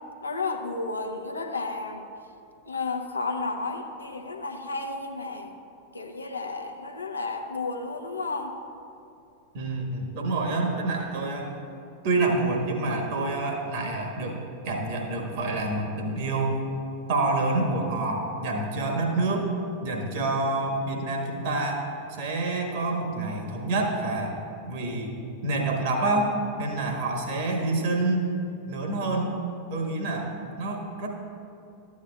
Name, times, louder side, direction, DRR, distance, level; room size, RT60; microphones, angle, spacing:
voice 1, 0.2-2.1 2.7-5.5 5.9-8.5, left 3 dB, 80° left, 3 dB, 0.6 m, -32 dB
voice 2, 9.5-11.5 12.0-16.6 17.1-19.5 19.8-21.9 22.2-24.3 24.7-25.1 25.4-26.3 26.6-28.3 28.7-29.3 29.7-30.3 30.6-31.1, right 2 dB, 50° right, 1 dB, 1.3 m, -27 dB
13.0 x 8.2 x 2.3 m, 2.7 s
figure-of-eight pair, 90°, 0 cm